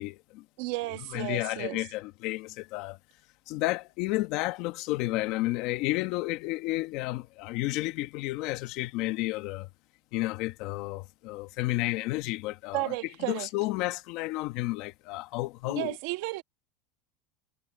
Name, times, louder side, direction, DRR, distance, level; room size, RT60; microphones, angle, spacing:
voice 1, 0.0-0.4 0.8-3.0 3.5-9.7 10.1-16.0, left 19 dB, 55° left, 1.5 m, -32 dB
voice 2, 0.6-1.9 12.7-13.5 15.7-16.4, right 22 dB, 65° right, 1.7 m, -33 dB
supercardioid pair, 150°, 0 cm